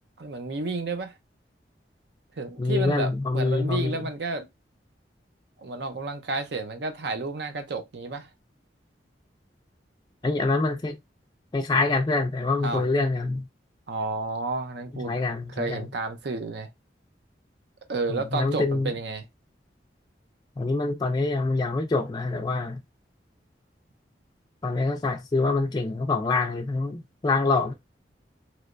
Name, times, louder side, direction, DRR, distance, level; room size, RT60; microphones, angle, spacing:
voice 1, 0.2-1.1 2.4-4.5 5.6-8.3 12.6-12.8 13.9-15.1 15.5-16.7 17.9-19.2, right 3 dB, 70° right, 0.6 m, -31 dB
voice 2, 2.6-4.0 10.2-11.0 11.5-13.5 14.9-15.9 18.1-18.9 20.6-22.8 24.6-27.7, left 3 dB, 25° left, 0.4 m, -25 dB
3.2 x 2.9 x 2.5 m
head